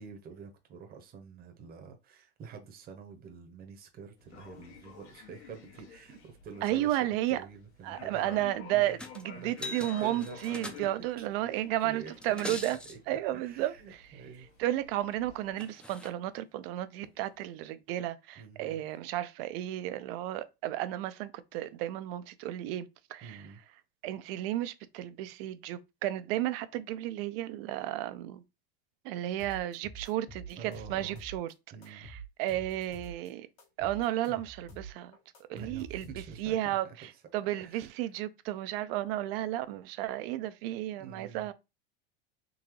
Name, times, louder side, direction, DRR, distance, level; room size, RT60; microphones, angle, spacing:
voice 1, 0.0-7.0 7.3-8.5 8.7-9.0 9.4-10.4 11.2-11.3 11.8-12.1 12.5-12.6 12.9-14.5 18.4-18.8 23.2-23.6 30.6-31.2 31.7-32.1 35.5-37.2 37.6-38.1 41.0-41.5, right 6 dB, 30° right, 0.8 m, -47 dB
sound 1, 4.2-15.5, left 7 dB, 85° left, 1.4 m, -52 dB
voice 2, 6.6-7.4 7.8-12.8 13.1-13.7 14.6-23.4 24.0-28.4 29.0-31.5 31.9-32.1 32.4-33.5 33.8-35.2 35.5-36.0 36.4-37.1 37.3-41.5, right 14 dB, 65° right, 0.5 m, -33 dB
sound 2, 9.0-9.2 9.5-11.1 12.1-13.0 15.1-15.2 15.6-16.1 17.0-17.1, left 2 dB, 5° left, 0.4 m, -42 dB
sound 3, 29.4-31.5 31.8-33.3 33.6-36.5, right 3 dB, 70° left, 1.5 m, -47 dB
3.8 x 2.7 x 3.0 m
supercardioid pair, 115°, 32 cm